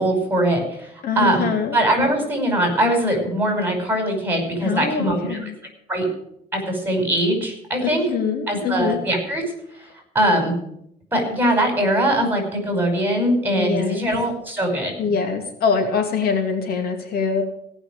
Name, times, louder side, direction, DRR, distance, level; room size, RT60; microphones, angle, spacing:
voice 1, 0.0-5.5 5.9-6.1 6.5-8.0 8.5-9.4 9.7-10.5 11.1-14.9, right 1 dB, 10° right, 3 dB, 5.6 m, -21 dB
voice 2, 1.0-1.8 4.6-5.5 7.8-9.0 13.6-14.1 15.0-17.4, left 5 dB, 65° left, 4 dB, 2.5 m, -23 dB
17.0 x 6.2 x 9.0 m, 0.73 s
cardioid pair, 110°, 17 cm